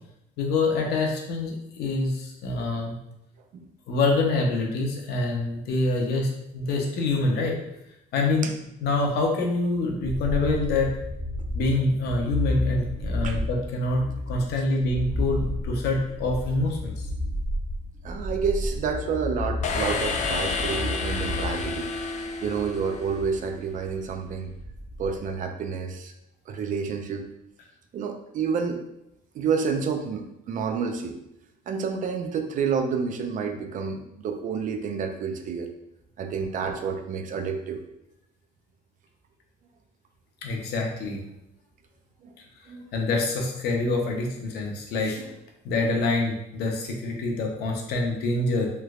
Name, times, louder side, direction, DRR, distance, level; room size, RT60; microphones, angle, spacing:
voice 1, 0.4-3.0 3.9-7.6 8.1-8.5 8.8-11.0 11.5-16.9 40.4-41.2 42.9-45.2 45.6-48.7, left 2 dB, 75° left, 1 dB, 0.7 m, -26 dB
sound 1, 10.0-25.3, left 1 dB, 25° right, 1.5 m, -32 dB
voice 2, 18.0-21.9 22.4-24.5 25.0-26.1 26.5-27.3 27.9-28.8 29.3-31.2 31.7-35.7 36.2-37.8 42.2-42.3 42.7-42.9, right 6 dB, 50° right, 6 dB, 0.4 m, -29 dB
sound 2, 19.6-23.5, left 4 dB, 45° left, 0.4 m, -30 dB
3.2 x 3.0 x 2.3 m, 0.83 s
cardioid pair, 110°, 17 cm